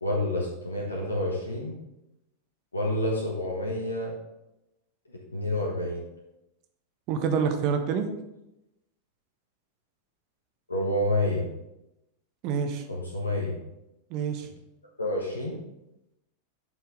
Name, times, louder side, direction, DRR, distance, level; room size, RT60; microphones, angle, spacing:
voice 1, 0.0-1.7 2.7-4.1 5.3-6.1 10.7-11.5 12.9-13.6 15.0-15.6, left 1 dB, 80° left, -2 dB, 1.2 m, -28 dB
voice 2, 7.1-8.1 12.4-12.8 14.1-14.5, right 6 dB, 40° right, 7 dB, 1.0 m, -27 dB
7.8 x 5.8 x 3.8 m, 0.90 s
figure-of-eight pair, 90°, 0 cm